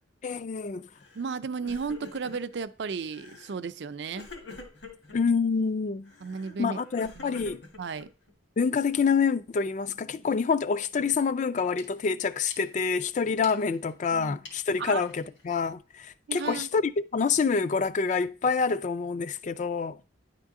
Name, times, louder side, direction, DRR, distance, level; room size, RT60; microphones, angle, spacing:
voice 1, 0.2-0.9 5.1-6.1 6.6-7.6 8.6-20.0, left 5 dB, 40° left, 0.3 m, -27 dB
Crying sobbing, 1.0-1.3 1.6-2.6 3.1-3.6 4.1-5.2 6.1-8.3, left 3 dB, 65° left, 1.5 m, -46 dB
voice 2, 1.1-4.3 6.2-6.8 7.2-8.1 14.1-14.4 14.8-15.0 16.3-16.7, right 5 dB, 65° right, 0.4 m, -34 dB
sound 1, 11.5-16.8, left 3 dB, 85° left, 1.8 m, -53 dB
10.0 x 3.7 x 3.7 m
head